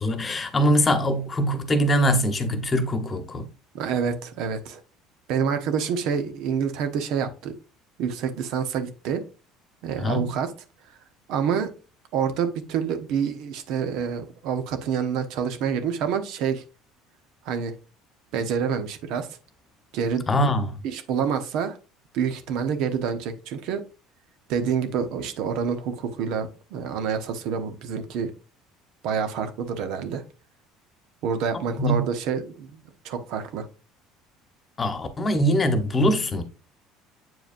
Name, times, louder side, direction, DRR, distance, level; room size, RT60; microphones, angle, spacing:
voice 1, 0.0-3.5 10.0-10.3 20.3-20.8 31.8-32.0 34.8-36.4, equal, 25° left, 1.1 m, -22 dB
voice 2, 3.7-4.8 5.3-7.5 8.0-9.2 9.8-10.5 11.3-11.7 12.1-16.6 17.4-17.7 18.3-19.3 19.9-20.5 20.8-21.8 22.1-23.8 24.5-28.3 29.0-30.2 31.2-33.7, right 7 dB, 70° right, 1.0 m, -27 dB
7.7 x 4.8 x 2.6 m
supercardioid pair, 95°, 0 cm